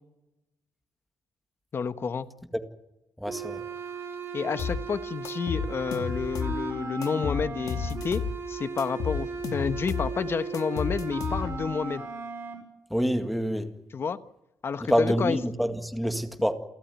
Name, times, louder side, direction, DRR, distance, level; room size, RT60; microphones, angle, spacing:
voice 1, 1.7-2.3 4.3-8.2 8.5-12.0 13.9-14.2 14.6-15.4, left 6 dB, 35° left, 12 dB, 1.2 m, -30 dB
voice 2, 3.2-3.6 12.9-13.7 14.8-16.5, equal, ahead, 7 dB, 2.0 m, -27 dB
sound 1, 3.3-12.5, right 4 dB, 40° right, 6.8 m, -36 dB
sound 2, 4.6-4.8 5.2-6.6 7.0-8.4 8.8-10.1 10.5-11.7, left 6 dB, 65° left, 2.2 m, -32 dB
29.0 x 13.5 x 9.3 m, 0.96 s
cardioid pair, 150°, 7 cm